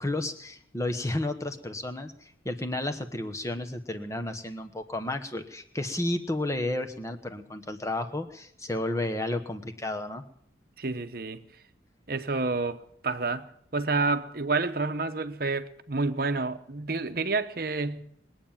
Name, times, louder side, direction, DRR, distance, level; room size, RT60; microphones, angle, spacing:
voice 1, 0.0-10.2, left 1 dB, 15° left, 1.1 m, -32 dB
voice 2, 10.8-11.4 12.1-13.5 13.7-18.1, right 3 dB, 50° right, 1.0 m, -29 dB
22.0 x 9.0 x 7.3 m
head